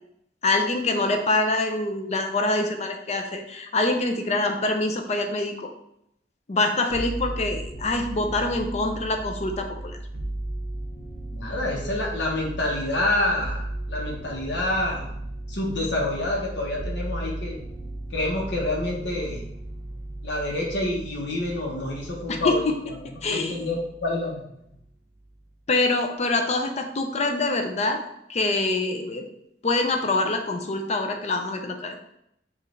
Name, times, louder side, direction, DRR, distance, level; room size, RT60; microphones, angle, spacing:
voice 1, 0.4-5.7 6.5-10.0 22.3-22.5 23.0-23.7 25.7-28.0 28.3-29.2 29.6-32.0, left 2 dB, 40° left, 4 dB, 0.5 m, -25 dB
sound 1, 6.9-24.3 24.7-25.4, right 1 dB, 60° right, 0.6 m, -36 dB
voice 2, 11.3-15.1 15.5-17.6 18.1-19.4 20.2-22.7 23.0-24.4, left 1 dB, 85° left, -2 dB, 1.0 m, -27 dB
5.0 x 2.5 x 3.2 m, 0.76 s
head